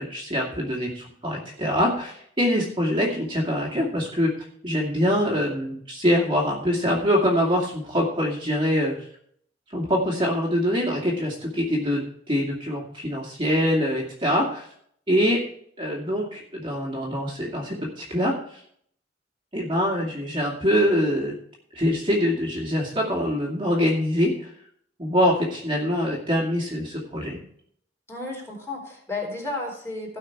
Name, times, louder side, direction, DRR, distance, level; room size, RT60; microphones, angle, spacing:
voice 1, 0.0-4.3 4.6-9.0 9.7-14.7 15.1-15.4 15.8-18.6 19.5-21.3 21.7-24.5 25.0-27.4, equal, 25° right, -3 dB, 2.3 m, -24 dB
voice 2, 28.1-30.2, left 2 dB, 15° left, -2 dB, 4.0 m, -33 dB
17.0 x 5.8 x 4.6 m, 0.64 s
head